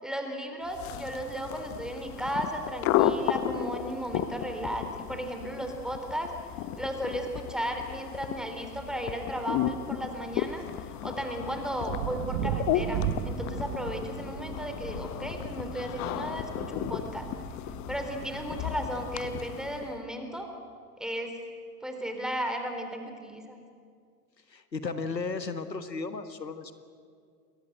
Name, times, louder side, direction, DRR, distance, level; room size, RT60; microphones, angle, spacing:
voice 1, 0.0-6.3 6.8-10.6 11.0-17.3 17.9-20.5 21.0-21.4 21.8-23.6, right 1 dB, ahead, 4 dB, 3.7 m, -35 dB
sound 1, 0.7-20.0, left 11 dB, 35° left, 1.2 m, -34 dB
sound 2, 11.9-19.5, right 13 dB, 45° right, 1.2 m, -37 dB
voice 2, 24.5-26.8, left 4 dB, 85° left, 10 dB, 1.6 m, -35 dB
29.5 x 22.0 x 8.0 m, 2.2 s
figure-of-eight pair, 90°, 49 cm